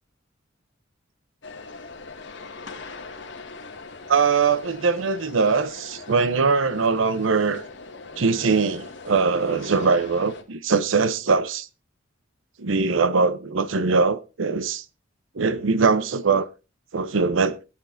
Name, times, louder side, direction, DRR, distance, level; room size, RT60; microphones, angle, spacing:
sound 1, 1.4-10.4, left 3 dB, 60° left, 2.0 m, -41 dB
voice 1, 4.1-7.6 8.2-11.7 12.6-14.8 15.4-16.5 16.9-17.6, right 4 dB, 75° right, 0.7 m, -21 dB
23.0 x 9.6 x 2.6 m
head